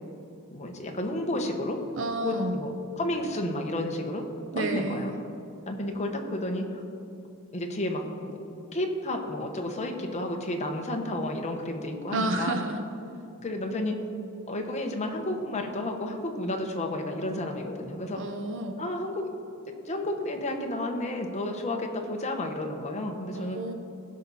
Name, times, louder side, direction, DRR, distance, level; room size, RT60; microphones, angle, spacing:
voice 1, 0.5-1.8 2.2-4.3 4.5-5.1 5.7-6.8 7.5-8.4 8.7-12.6 13.4-14.0 14.5-18.2 18.8-19.3 19.8-23.6, left 1 dB, 30° left, 3 dB, 1.0 m, -31 dB
voice 2, 2.0-2.6 4.5-5.1 12.1-12.8 18.1-18.8 23.3-23.7, right 2 dB, 60° right, 5 dB, 0.8 m, -30 dB
17.0 x 5.7 x 4.1 m, 2.8 s
head